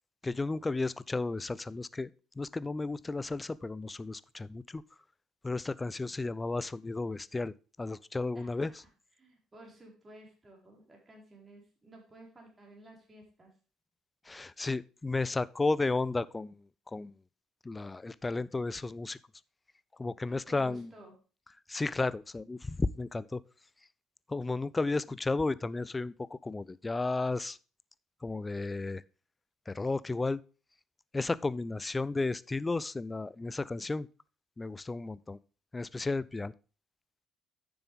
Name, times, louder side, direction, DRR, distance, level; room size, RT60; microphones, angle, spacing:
voice 1, 0.2-2.1 2.4-4.8 5.4-8.7 14.2-17.1 17.6-19.2 20.0-20.9 21.7-23.4 24.3-27.6 28.2-29.0 29.7-30.4 31.1-34.1 34.6-35.4 35.7-36.5, left 3 dB, 20° left, 0.4 m, -33 dB
voice 2, 8.3-8.8 9.2-13.5 20.2-21.1, right 1 dB, 25° right, 4.4 m, -54 dB
9.8 x 6.9 x 3.5 m
hypercardioid pair, 55°, 0 cm